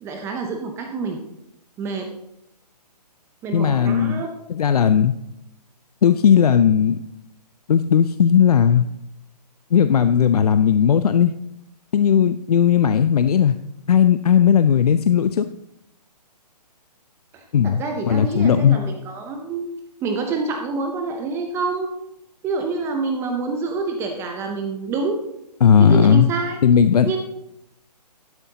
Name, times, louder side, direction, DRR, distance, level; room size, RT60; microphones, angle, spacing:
voice 1, 0.0-1.2 1.8-2.1 3.4-4.3 17.3-19.7 20.0-21.9 22.4-25.2 25.8-26.6 27.0-27.2, right 3 dB, 10° right, 4 dB, 0.6 m, -27 dB
voice 2, 3.5-4.2 4.5-5.1 6.0-7.0 7.7-8.8 9.7-11.3 11.9-13.6 13.9-15.5 17.5-18.8 25.6-26.3 26.6-27.1, left 8 dB, 65° left, 11 dB, 0.5 m, -16 dB
11.5 x 9.7 x 2.8 m, 0.84 s
hypercardioid pair, 145°, 21 cm